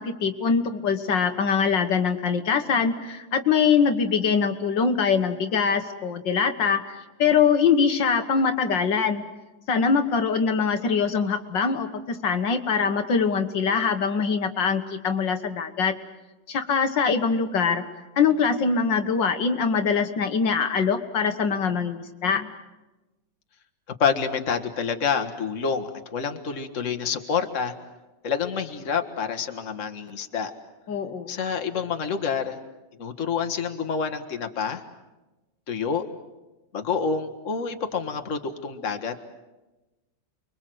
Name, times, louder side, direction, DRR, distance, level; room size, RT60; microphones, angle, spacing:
voice 1, 0.0-9.2 9.7-16.0 16.5-17.8 18.2-22.5 30.9-31.3, left 6 dB, 70° left, 6 dB, 2.0 m, -23 dB
voice 2, 24.0-27.7 28.2-30.5 31.3-32.6 33.0-34.8 35.7-36.0 36.7-39.2, left 6 dB, 45° left, 6 dB, 1.8 m, -28 dB
30.0 x 23.0 x 7.8 m, 1.1 s
omnidirectional pair, 2.0 m